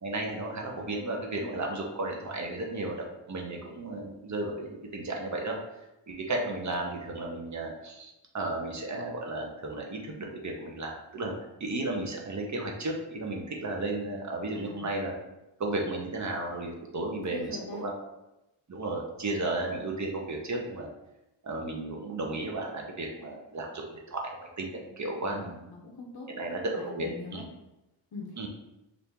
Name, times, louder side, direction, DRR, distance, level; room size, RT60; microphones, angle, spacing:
voice 1, 0.0-5.6 6.1-11.3 11.6-15.1 15.6-17.9 18.7-20.9 21.4-25.6 26.3-27.5 28.4-28.5, right 2 dB, 40° right, 0 dB, 0.7 m, -34 dB
voice 2, 14.5-14.8 17.3-17.9 25.2-26.3 26.7-27.4 28.1-28.3, left 3 dB, 55° left, -2 dB, 0.7 m, -42 dB
2.8 x 2.6 x 3.5 m, 0.93 s
wide cardioid pair, 90°, 46 cm